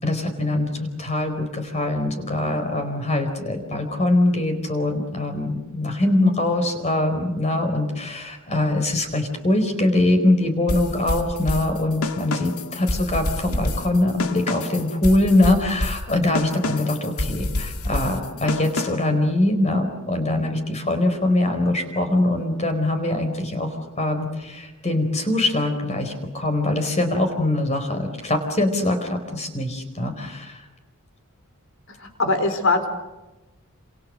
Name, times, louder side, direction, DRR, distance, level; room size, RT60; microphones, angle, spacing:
voice 1, 0.0-23.7 24.0-30.6, left 1 dB, 30° left, 6 dB, 4.5 m, -23 dB
sound 1, 10.7-19.2, left 2 dB, 80° left, 2.0 m, -28 dB
voice 2, 32.0-32.9, left 3 dB, 60° left, 7 dB, 4.4 m, -21 dB
29.0 x 27.5 x 6.6 m, 1.1 s
head